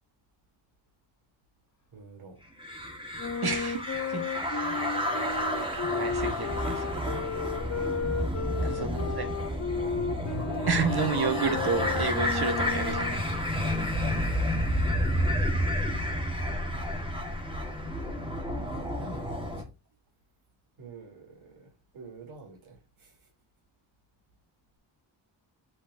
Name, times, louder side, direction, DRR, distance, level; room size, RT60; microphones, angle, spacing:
voice 1, 1.9-2.4 8.6-9.5 15.5-16.2 18.7-19.7 20.8-23.3, right 2 dB, 80° right, 3.5 m, -47 dB
sound 1, 2.6-19.6, equal, 10° right, 1.7 m, -30 dB
Wind instrument woodwind instrument, 3.2-13.2, left 6 dB, 35° left, 1.0 m, -34 dB
voice 2, 3.4-3.8 4.1-4.8 5.7-7.2 8.6-9.4 10.7-13.2, right 5 dB, 50° right, 1.6 m, -31 dB
8.3 x 5.0 x 2.7 m
wide cardioid pair, 150°, 47 cm